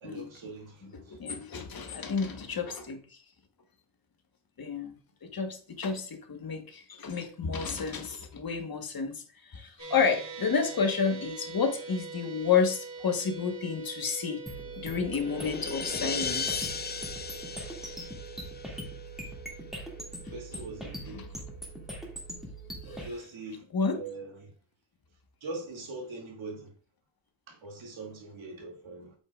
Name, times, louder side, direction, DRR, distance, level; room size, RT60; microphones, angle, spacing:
voice 1, 0.0-1.2 20.1-21.2 22.9-23.6 23.9-24.5 25.4-26.7 27.5-29.1, right 3 dB, 80° right, 2.6 m, -42 dB
voice 2, 0.9-3.2 4.6-4.9 5.2-14.4 14.8-16.7 20.2-20.3 21.1-21.3 23.7-24.0, left 5 dB, 50° left, 1.5 m, -30 dB
sound 1, 9.8-22.1, right 4 dB, 45° right, 2.9 m, -45 dB
sound 2, 14.5-23.1, right 1 dB, ahead, 2.3 m, -42 dB
sound 3, 14.6-19.2, left 5 dB, 20° left, 0.5 m, -37 dB
8.4 x 8.0 x 2.5 m
wide cardioid pair, 135°, 46 cm